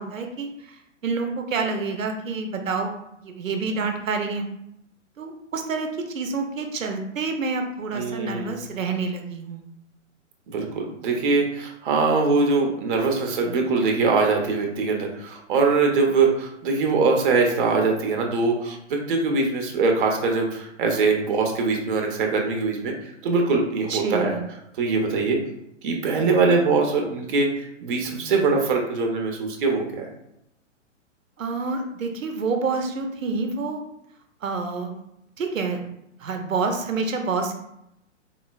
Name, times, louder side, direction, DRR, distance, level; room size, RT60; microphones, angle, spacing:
voice 1, 0.0-2.9 3.2-4.5 5.2-9.6 23.9-24.4 31.4-33.8 34.4-35.0 35.4-35.8 36.2-37.5, right 4 dB, 85° right, 4 dB, 0.6 m, -28 dB
voice 2, 7.9-8.5 10.5-22.9 23.2-24.3 24.8-25.4 25.8-30.0, right 4 dB, 45° right, 2 dB, 0.6 m, -22 dB
3.7 x 2.0 x 2.3 m, 0.80 s
figure-of-eight pair, 125°, 38 cm